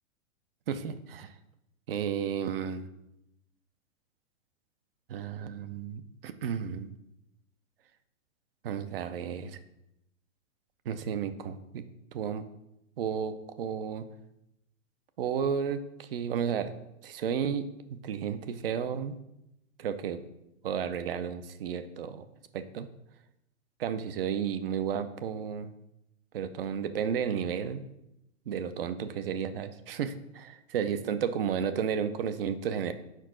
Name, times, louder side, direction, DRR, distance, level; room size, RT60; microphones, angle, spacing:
voice 1, 0.7-1.3 1.9-2.9 5.1-6.9 8.6-9.6 10.9-11.8 12.1-12.4 13.0-14.1 15.2-16.7 17.0-19.1 19.8-20.2 20.6-22.2 22.5-22.9 23.8-25.7 26.3-27.8 28.5-32.9, right 7 dB, 45° right, 11 dB, 0.5 m, -32 dB
4.6 x 4.5 x 5.9 m, 0.85 s
hypercardioid pair, 155°, 40 cm